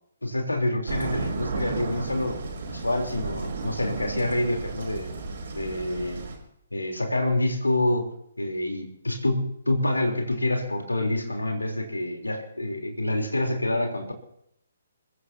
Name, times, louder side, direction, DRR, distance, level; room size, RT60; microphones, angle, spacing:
voice 1, 0.2-2.4 2.7-5.1 5.5-6.2 6.7-8.1 8.4-14.1, left 1 dB, 80° left, 3 dB, 3.6 m, -27 dB
sound 1, 0.9-6.4, right 3 dB, 50° right, 5.3 m, -33 dB
29.5 x 15.0 x 2.8 m, 0.73 s
figure-of-eight pair, 135°, 0 cm